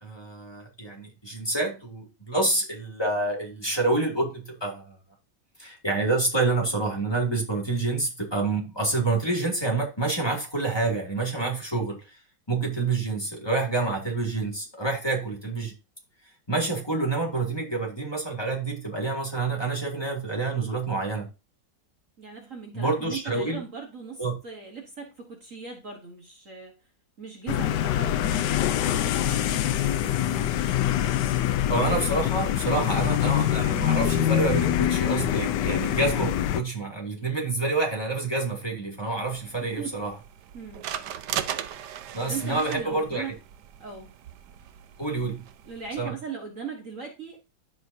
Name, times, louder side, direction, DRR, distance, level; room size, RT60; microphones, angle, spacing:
voice 1, 0.0-5.0 5.6-12.2 12.5-15.7 16.5-21.3 22.7-23.6 24.2-24.4 31.7-40.1 42.1-43.3 45.0-45.4 46.0-46.1, right 3 dB, 15° left, -1 dB, 2.3 m, -28 dB
voice 2, 22.2-26.8 27.2-30.6 39.6-40.0 40.5-40.9 42.2-43.3 43.8-44.1 45.6-47.4, right 6 dB, 45° right, 2 dB, 1.6 m, -39 dB
sound 1, 27.5-36.6, left 11 dB, 75° left, 1.2 m, -25 dB
sound 2, 39.2-46.0, right 9 dB, 70° right, 1.2 m, -38 dB
14.5 x 5.0 x 2.7 m, 0.28 s
omnidirectional pair, 2.0 m